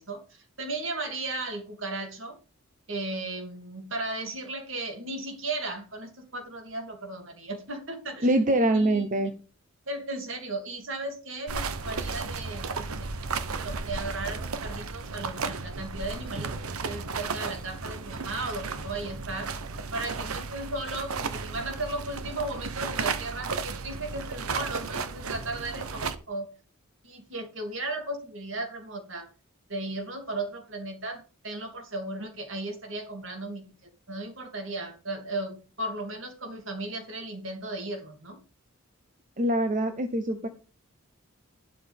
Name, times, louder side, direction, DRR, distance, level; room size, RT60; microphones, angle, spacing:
voice 1, 0.0-2.4 2.9-8.3 8.7-9.0 9.9-13.1 13.5-19.5 19.9-26.5 27.0-29.3 29.7-33.7 34.1-38.4, right 2 dB, 65° right, 4 dB, 2.7 m, -36 dB
voice 2, 8.2-9.3 39.4-40.5, right 1 dB, 35° right, 8 dB, 0.9 m, -24 dB
sound 1, 11.5-26.2, right 4 dB, 90° right, 1.0 m, -34 dB
12.0 x 11.0 x 3.6 m, 0.36 s
head